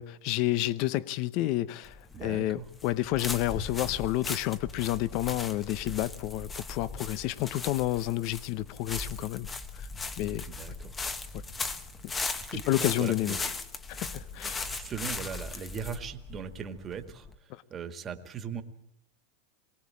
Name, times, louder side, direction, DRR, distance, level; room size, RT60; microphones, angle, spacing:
voice 1, 0.0-9.5 9.8-9.9 10.2-10.5 11.3-11.4 12.0-12.1 12.5-13.5 13.9-14.7 17.5-17.6, left 16 dB, 45° left, 0.8 m, -30 dB
sound 1, 1.8-17.4, left 3 dB, 15° left, 1.2 m, -38 dB
voice 2, 2.1-2.7 10.5-10.9 12.5-13.5 14.6-17.3 17.7-18.6, right 7 dB, 25° right, 1.8 m, -39 dB
23.0 x 18.0 x 8.6 m
supercardioid pair, 145°, 0 cm